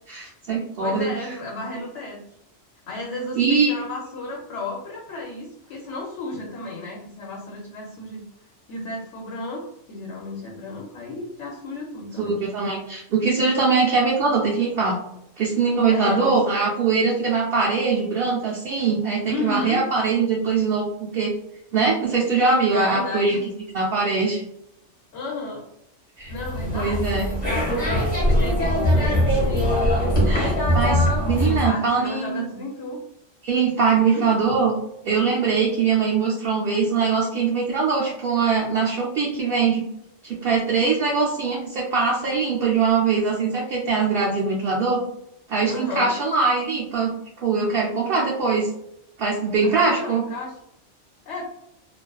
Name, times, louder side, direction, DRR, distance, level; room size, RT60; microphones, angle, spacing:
voice 1, 0.1-1.1 3.4-3.7 12.2-15.0 15.4-21.3 21.7-23.4 23.7-24.4 26.2-26.3 26.7-27.3 30.2-32.4 33.4-34.7 35.0-39.8 40.2-45.0 45.5-47.1 47.4-48.7 49.2-50.2, right 4 dB, 60° right, -4 dB, 0.7 m, -22 dB
voice 2, 0.8-2.2 2.9-8.2 8.7-12.4 15.9-16.4 19.2-19.9 22.7-23.4 25.1-25.6 26.3-31.0 31.4-33.0 34.1-34.6 45.7-46.2 49.6-50.6 51.3-51.4, left 2 dB, 75° left, -2 dB, 0.9 m, -33 dB
sound 1, 26.3-31.7, equal, 40° left, 0.9 m, -21 dB
2.4 x 2.3 x 2.2 m, 0.78 s
omnidirectional pair, 1.2 m